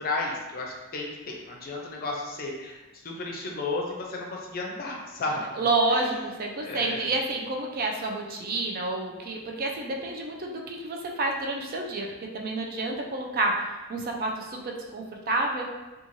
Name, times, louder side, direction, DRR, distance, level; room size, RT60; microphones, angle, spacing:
voice 1, 0.0-2.8 3.0-5.5 5.9-6.2 6.7-7.1, left 2 dB, 45° left, -1 dB, 0.5 m, -33 dB
voice 2, 5.6-15.7, right 2 dB, 45° right, 1 dB, 0.4 m, -29 dB
3.0 x 2.3 x 2.6 m, 1.1 s
head